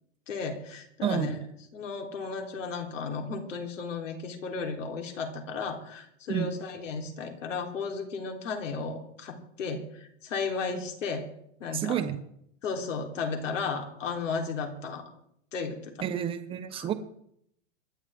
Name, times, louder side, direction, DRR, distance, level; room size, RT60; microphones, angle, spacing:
voice 1, 0.3-1.4 1.7-11.3 11.6-12.1 12.6-15.1 15.5-15.9 16.8-16.9, left 4 dB, 85° left, 3 dB, 3.7 m, -34 dB
voice 2, 1.0-1.4 6.3-6.5 11.7-12.2 16.0-16.9, right 9 dB, 15° right, 9 dB, 1.0 m, -30 dB
26.0 x 11.0 x 3.7 m, 0.71 s
hypercardioid pair, 155°, 37 cm